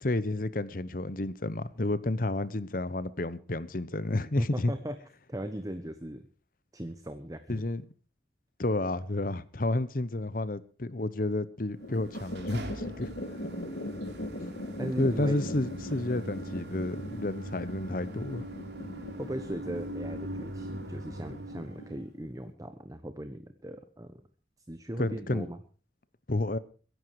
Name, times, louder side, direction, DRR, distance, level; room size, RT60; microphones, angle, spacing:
voice 1, 0.0-4.7 7.5-7.8 8.6-13.1 15.0-18.5 25.0-25.5 26.3-26.6, left 2 dB, 50° left, 1.0 m, -31 dB
voice 2, 4.4-5.0 5.3-6.3 6.7-7.6 14.2-14.3 14.8-15.4 15.8-15.9 19.2-24.2 24.7-25.6, right 1 dB, 20° right, 1.0 m, -38 dB
sound 1, 11.7-22.5, left 1 dB, 65° left, 1.9 m, -40 dB
sound 2, 11.8-22.1, right 1 dB, 65° right, 3.2 m, -42 dB
22.5 x 11.0 x 4.8 m
head